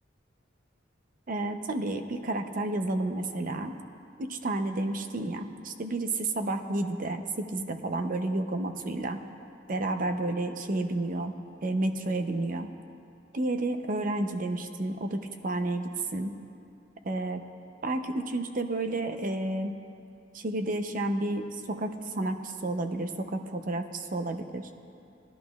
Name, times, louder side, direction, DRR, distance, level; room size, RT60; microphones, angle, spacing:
voice 1, 1.3-3.7 4.2-9.2 9.7-11.3 11.6-12.7 13.3-16.3 17.0-17.4 17.8-19.8 20.3-24.7, right 2 dB, 45° right, 7 dB, 0.6 m, -31 dB
19.5 x 11.0 x 2.4 m, 2.5 s
head